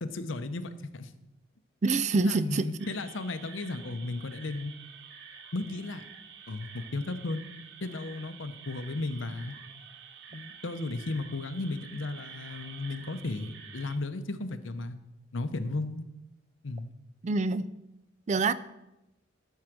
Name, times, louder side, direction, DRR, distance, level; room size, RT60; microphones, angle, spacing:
voice 1, 0.0-1.1 2.2-4.7 5.5-6.0 6.5-7.4 7.8-9.5 10.3-15.0 15.3-16.0 16.6-16.9, left 2 dB, 80° left, 10 dB, 0.8 m, -35 dB
voice 2, 1.8-2.7 17.2-17.7 18.3-18.5, right 3 dB, 40° right, 15 dB, 0.4 m, -26 dB
sound 1, 2.8-14.0, right 6 dB, 65° right, 1.0 m, -49 dB
12.5 x 4.7 x 6.1 m, 0.92 s
head